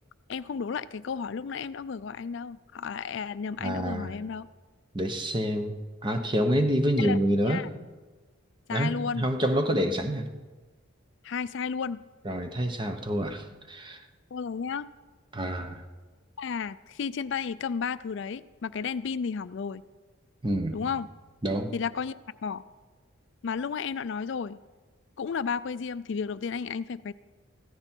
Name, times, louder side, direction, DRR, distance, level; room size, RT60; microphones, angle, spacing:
voice 1, 0.3-4.5 7.0-7.2 7.5-7.7 8.7-9.3 11.2-12.0 14.3-14.9 16.4-19.8 20.7-21.1 21.7-22.1 22.4-22.6 23.4-24.6 25.2-27.1, left 6 dB, 60° left, 16 dB, 0.4 m, -33 dB
voice 2, 3.6-4.1 4.9-5.7 6.0-7.6 8.7-10.3 12.2-14.0 15.3-15.8 20.4-20.9 21.4-21.7, equal, 20° right, 7 dB, 0.9 m, -27 dB
15.5 x 14.0 x 4.5 m, 1.3 s
head